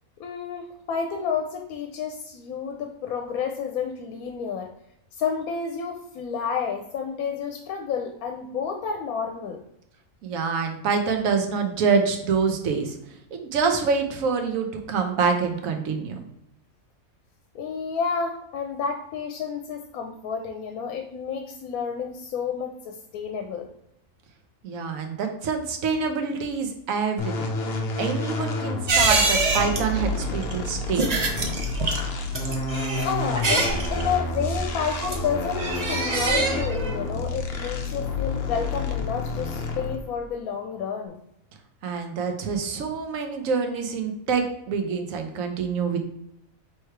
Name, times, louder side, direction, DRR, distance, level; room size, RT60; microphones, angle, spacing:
voice 1, 0.2-4.7 5.1-9.6 17.5-23.7 33.0-41.2, left 6 dB, 85° left, 4 dB, 1.0 m, -30 dB
voice 2, 10.2-13.0 13.3-16.3 24.6-27.5 28.0-31.0 41.8-46.0, right 5 dB, 75° right, 5 dB, 1.1 m, -26 dB
sound 1, 27.2-40.1, left 2 dB, 55° left, 0.7 m, -30 dB
sound 2, 28.9-38.8 39.1-39.2, right 3 dB, 55° right, 0.4 m, -26 dB
3.4 x 3.1 x 4.5 m, 0.78 s
omnidirectional pair, 1.5 m